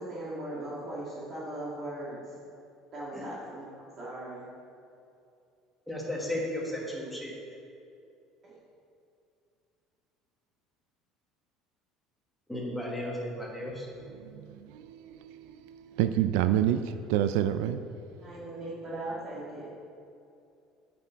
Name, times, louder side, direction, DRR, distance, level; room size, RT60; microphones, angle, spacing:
voice 1, 0.0-2.4 2.9-4.4 8.4-8.6 18.2-19.7, right 1 dB, 35° right, -7 dB, 1.7 m, -39 dB
voice 2, 5.9-7.3 12.5-13.9, left 1 dB, ahead, -3 dB, 1.5 m, -34 dB
voice 3, 14.0-17.8, right 11 dB, 80° right, 11 dB, 0.3 m, -29 dB
8.3 x 6.0 x 4.5 m, 2.6 s
cardioid pair, 155°, 0 cm